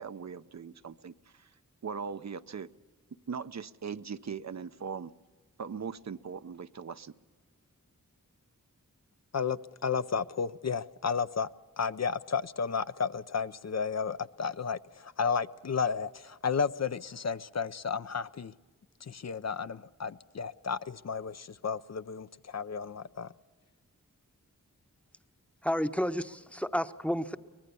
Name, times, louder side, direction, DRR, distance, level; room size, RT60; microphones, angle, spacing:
voice 1, 0.0-1.5 1.8-2.7 3.3-5.1 5.6-7.1, right 6 dB, 55° right, 12 dB, 0.6 m, -40 dB
voice 2, 9.3-11.5 11.8-18.5 19.0-23.3, left 6 dB, 55° left, 13 dB, 0.5 m, -33 dB
voice 3, 25.6-27.4, equal, 5° left, 10 dB, 0.8 m, -31 dB
24.0 x 19.5 x 6.9 m, 1.4 s
wide cardioid pair, 75°, 33 cm